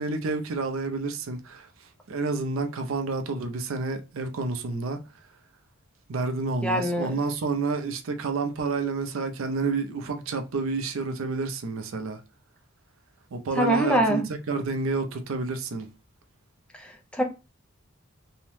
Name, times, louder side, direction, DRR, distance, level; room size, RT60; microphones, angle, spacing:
voice 1, 0.0-1.7 2.1-5.0 6.1-12.2 13.3-15.9, right 4 dB, 65° right, 0.4 m, -29 dB
voice 2, 6.6-7.1 13.6-14.3 17.1-17.2, equal, 5° left, 0.4 m, -23 dB
2.7 x 2.0 x 3.1 m
head